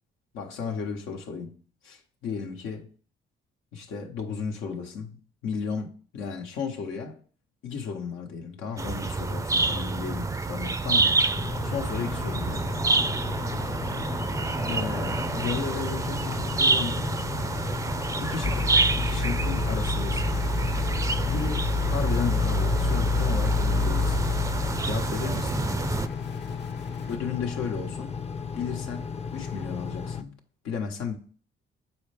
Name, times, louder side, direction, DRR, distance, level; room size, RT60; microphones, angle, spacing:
voice 1, 0.3-1.5 1.8-2.9 3.7-7.2 7.6-11.3 11.6-12.6 14.6-17.1 18.2-20.4 21.2-24.3 24.8-25.7 27.1-28.1 28.5-30.3 30.6-31.1, left 6 dB, 85° left, 1.3 m, -34 dB
sound 1, 8.8-26.1, right 3 dB, 15° right, 0.4 m, -28 dB
Engine, 11.3-30.2, left 6 dB, 30° left, 0.6 m, -35 dB
sound 2, 18.4-26.7 27.1-27.2, left 3 dB, 60° left, 0.8 m, -28 dB
6.9 x 4.4 x 3.4 m
cardioid pair, 90°, 20 cm